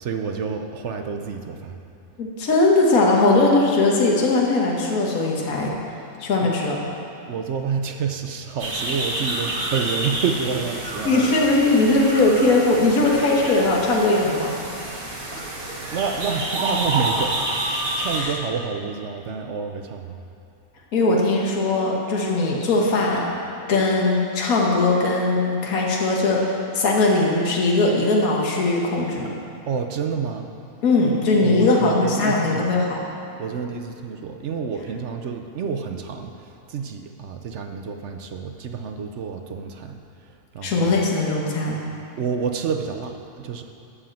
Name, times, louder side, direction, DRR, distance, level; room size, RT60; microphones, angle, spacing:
voice 1, 0.0-1.8 6.4-6.5 7.3-11.2 15.9-17.4 18.0-20.2 29.7-30.5 31.4-32.9 33.4-40.0 40.5-41.0 42.2-43.6, right 6 dB, 60° right, 5 dB, 0.9 m, -28 dB
voice 2, 2.2-5.7 6.2-6.8 11.0-14.5 15.3-15.5 18.1-18.3 20.9-23.2 23.7-29.3 30.8-33.0 40.6-41.8, left 2 dB, 75° left, -2 dB, 1.7 m, -20 dB
sound 1, 8.6-18.2, right 1 dB, 40° right, 1.4 m, -28 dB
12.5 x 5.0 x 7.4 m, 2.6 s
omnidirectional pair, 1.5 m